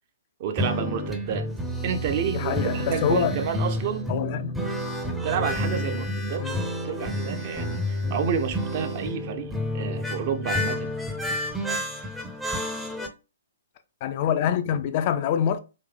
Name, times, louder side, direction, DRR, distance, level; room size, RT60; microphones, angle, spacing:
voice 1, 0.4-1.5 1.8-4.1 5.2-10.9, right 7 dB, 40° right, 0.7 m, -30 dB
sound 1, 0.6-13.1, left 1 dB, 5° right, 0.6 m, -30 dB
voice 2, 2.3-3.4 4.1-4.6 6.4-6.6 14.0-15.6, left 9 dB, 40° left, 0.4 m, -25 dB
3.9 x 2.7 x 3.4 m
figure-of-eight pair, 120°, 0 cm